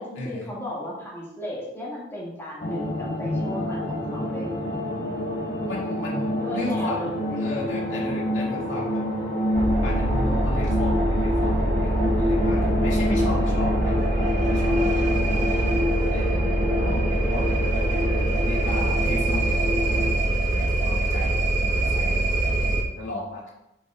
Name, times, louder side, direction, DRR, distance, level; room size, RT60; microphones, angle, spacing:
voice 1, 0.0-4.7 6.4-7.6 16.3-17.0, left 1 dB, 15° left, -6 dB, 2.0 m, -35 dB
sound 1, 2.6-20.1, left 1 dB, 45° left, 1.5 m, -27 dB
voice 2, 5.6-7.0 7.3-9.0 9.8-15.1 16.1-23.5, left 1 dB, 80° left, -4 dB, 2.2 m, -35 dB
sound 2, 9.5-22.8, right 1 dB, 40° right, 1.3 m, -24 dB
11.5 x 5.7 x 2.4 m, 0.88 s
head